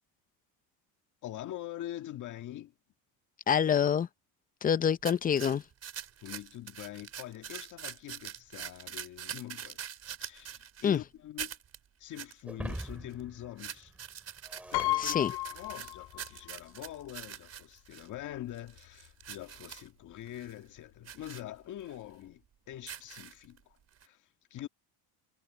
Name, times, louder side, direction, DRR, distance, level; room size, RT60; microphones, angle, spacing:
voice 1, 1.2-2.7 6.2-9.9 10.2-11.6 12.0-13.9 14.7-23.8 24.0-24.7, left 13 dB, 45° left, 1.8 m, -44 dB
voice 2, 3.5-4.1 4.6-5.6 10.8-11.0 15.0-15.3, left 8 dB, 20° left, 0.5 m, -26 dB
sound 1, 5.0-11.0 11.4-11.8 12.1-12.3 12.6-13.2 13.6-18.1 18.5-19.9 20.3-20.5 21.0-21.4 21.9-22.0 22.7-23.6 24.0-24.1, right 9 dB, 35° right, 4.4 m, -44 dB
Shatter, 12.4-15.9, right 1 dB, 5° right, 5.0 m, -44 dB
Piano, 14.7-16.6 16.9-17.0 18.1-18.2 18.5-18.8, left 18 dB, 70° left, 2.1 m, -33 dB
cardioid pair, 130°, 41 cm